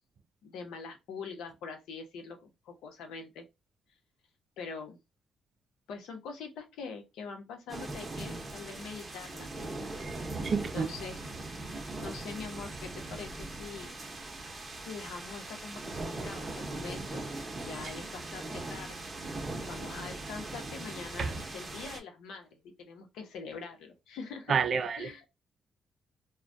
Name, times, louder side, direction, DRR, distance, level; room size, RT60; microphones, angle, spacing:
voice 1, 0.4-3.5 4.6-5.0 5.9-9.7 10.5-11.2 11.9-14.0 14.8-17.3 17.6-19.1 19.6-24.6 25.0-25.2, left 5 dB, 85° left, 0.7 m, -44 dB
sound 1, 7.7-22.0, right 2 dB, 25° right, 0.8 m, -40 dB
voice 2, 10.4-10.9 21.2-21.4 24.5-25.1, right 6 dB, 50° right, 0.4 m, -29 dB
2.3 x 2.1 x 2.5 m
cardioid pair, 90°, 0 cm